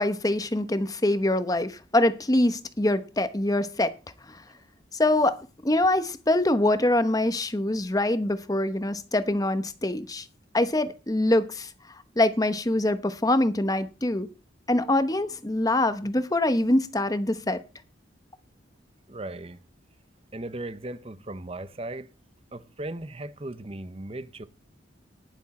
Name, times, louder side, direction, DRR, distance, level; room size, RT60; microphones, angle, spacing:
voice 1, 0.0-3.9 4.3-4.4 4.9-10.3 10.5-11.7 12.2-14.3 14.7-17.6, left 1 dB, 20° left, 0.9 m, -24 dB
voice 2, 19.1-19.6 20.3-22.1 22.5-24.4, right 2 dB, 30° right, 0.8 m, -37 dB
19.0 x 7.2 x 4.3 m
head